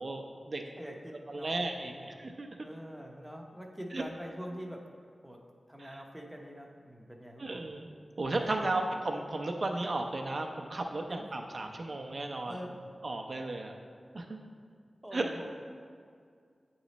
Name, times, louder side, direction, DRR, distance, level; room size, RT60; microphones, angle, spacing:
voice 1, 0.0-0.6 1.3-2.5 3.9-4.0 5.8-5.9 7.4-7.9 8.2-12.6 13.0-13.8 14.1-14.3 15.1-15.3, right 2 dB, 50° right, 3 dB, 0.5 m, -34 dB
voice 2, 0.6-1.5 1.9-2.1 2.6-4.9 5.2-7.6 8.4-8.7 11.1-11.2 12.5-12.7 15.0-15.5, equal, 5° right, 1 dB, 0.7 m, -44 dB
8.7 x 3.1 x 4.0 m, 2.2 s
wide cardioid pair, 85°, 0 cm